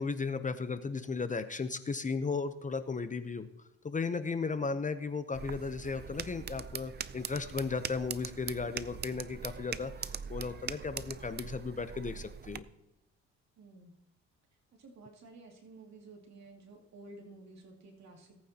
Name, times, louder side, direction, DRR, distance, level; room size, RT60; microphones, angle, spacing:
voice 1, 0.0-3.5 3.8-12.7, left 4 dB, 25° left, 10 dB, 0.8 m, -35 dB
sound 1, 5.3-12.6, right 7 dB, 35° right, 0.5 m, -42 dB
voice 2, 13.6-13.9 14.8-18.4, right 2 dB, 65° right, 1 dB, 2.5 m, -53 dB
18.5 x 9.0 x 2.9 m, 0.91 s
cardioid pair, 90°, 30 cm